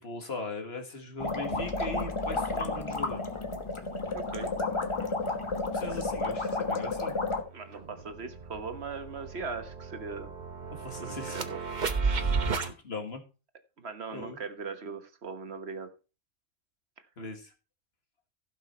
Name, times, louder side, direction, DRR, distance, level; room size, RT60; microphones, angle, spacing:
voice 1, 0.0-3.2 4.6-4.7 5.7-7.1 10.7-11.5 12.1-13.2 14.1-14.4 17.2-17.5, left 2 dB, 55° left, 4 dB, 2.0 m, -40 dB
sound 1, 1.2-7.4, left 3 dB, 25° left, 1.2 m, -31 dB
voice 2, 4.1-4.5 7.5-10.3 11.0-11.6 12.0-12.3 13.8-15.9, right 4 dB, 55° right, 8 dB, 1.5 m, -39 dB
sound 2, 7.3-7.4 7.7-12.7, right 4 dB, 40° right, 1.0 m, -33 dB
15.5 x 5.7 x 4.3 m, 0.33 s
omnidirectional pair, 1.3 m